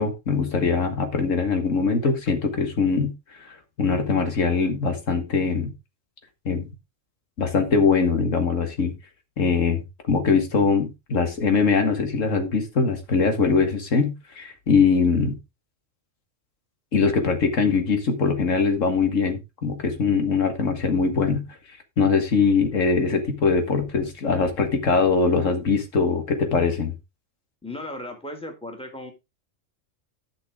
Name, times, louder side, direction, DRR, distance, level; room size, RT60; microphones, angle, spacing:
voice 1, 0.0-3.1 3.5-5.7 6.5-6.7 7.4-8.9 9.4-15.4 16.9-21.5 22.0-26.9, left 5 dB, 85° left, 6 dB, 2.0 m, -22 dB
voice 2, 27.6-29.1, left 1 dB, 5° left, 3 dB, 2.1 m, -36 dB
11.5 x 6.3 x 3.7 m, 0.24 s
omnidirectional pair, 1.3 m